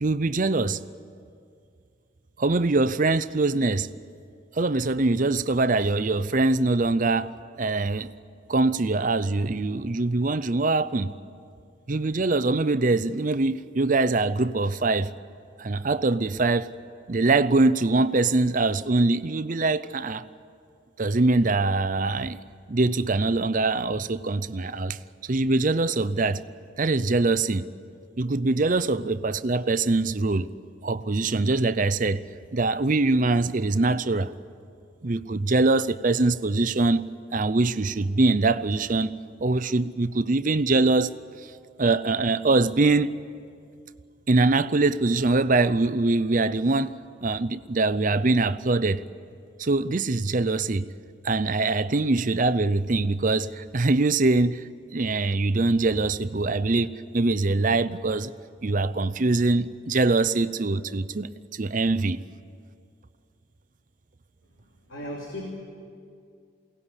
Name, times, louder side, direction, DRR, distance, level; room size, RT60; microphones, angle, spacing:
voice 1, 0.0-0.8 2.4-3.9 4.5-8.1 8.5-11.1 11.9-15.1 15.6-16.7 17.1-20.2 21.0-22.4 22.7-26.4 26.8-27.7 28.2-30.5 30.8-32.2 32.5-34.3 35.0-37.0 37.3-39.1 39.4-41.1 41.8-43.1 44.3-47.0 47.2-49.0 49.6-50.9 51.2-54.6 54.9-58.3 58.6-62.2, right 3 dB, 40° right, 0.6 m, -23 dB
voice 2, 64.9-65.5, left 1 dB, 85° left, 3.5 m, -35 dB
23.0 x 18.0 x 9.9 m
head